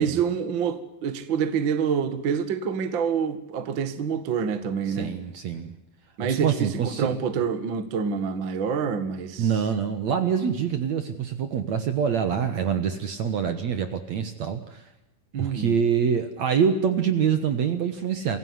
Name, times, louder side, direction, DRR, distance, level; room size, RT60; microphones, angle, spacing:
voice 1, 0.0-5.2 6.2-9.5 15.3-15.7, right 6 dB, 40° right, 1.9 m, -27 dB
voice 2, 4.9-5.7 6.2-7.2 9.4-14.8 15.4-18.4, right 7 dB, 55° right, 2.3 m, -25 dB
26.5 x 16.5 x 9.8 m
omnidirectional pair, 4.4 m